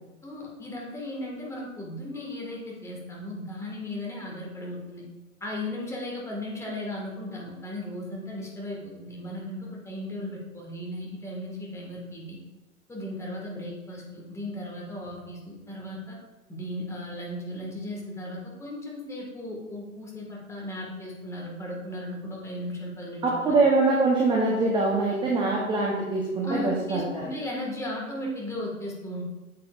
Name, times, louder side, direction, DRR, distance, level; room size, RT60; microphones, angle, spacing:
voice 1, 0.2-5.0 5.4-12.4 12.9-16.2 16.5-23.6 26.4-29.2, left 1 dB, 5° left, -2 dB, 1.8 m, -36 dB
voice 2, 23.2-27.2, right 3 dB, 10° right, -2 dB, 0.9 m, -23 dB
8.6 x 7.6 x 2.5 m, 1.1 s
figure-of-eight pair, 115°, 42 cm